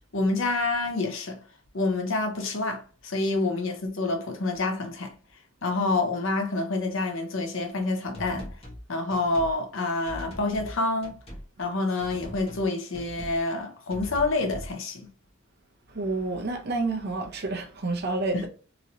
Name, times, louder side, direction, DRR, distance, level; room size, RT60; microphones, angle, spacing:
voice 1, 0.1-1.4 1.7-5.1 5.6-8.5 8.9-11.1 11.6-15.1, left 2 dB, 65° left, 0.7 m, -27 dB
sound 1, 8.1-8.8 9.1-9.6 10.1-10.8 11.0-11.5 12.0-12.7 12.9-13.4 13.9-14.7, equal, 30° left, 0.9 m, -41 dB
voice 2, 15.9-18.5, right 3 dB, 50° right, 0.6 m, -29 dB
3.0 x 2.8 x 2.6 m
head